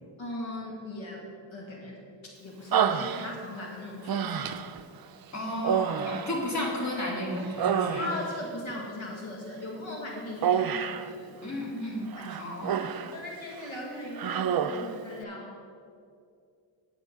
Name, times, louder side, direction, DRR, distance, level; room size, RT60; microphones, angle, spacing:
voice 1, 0.2-4.5 8.0-11.6 13.0-15.5, left 1 dB, 80° left, -1 dB, 1.8 m, -39 dB
Human voice, 2.7-3.6 4.1-4.8 5.6-7.0 7.4-8.4 10.4-11.1 12.1-13.2 13.5-13.7 14.2-15.0, right 8 dB, 50° right, 0.5 m, -29 dB
voice 2, 5.3-8.1 11.4-12.8, left 1 dB, 35° left, -2 dB, 2.2 m, -33 dB
9.6 x 7.9 x 5.2 m, 2.4 s
wide cardioid pair, 105°, 46 cm